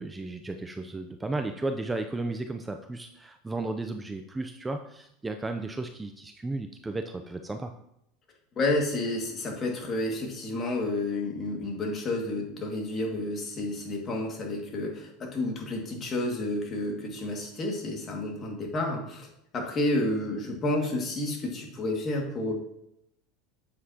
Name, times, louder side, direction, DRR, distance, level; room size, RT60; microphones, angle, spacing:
voice 1, 0.0-7.7, right 2 dB, 10° right, 6 dB, 0.5 m, -34 dB
voice 2, 8.6-19.3 19.5-22.5, left 2 dB, 30° left, 0 dB, 2.2 m, -30 dB
8.4 x 7.3 x 2.9 m, 0.78 s
supercardioid pair, 115°, 0 cm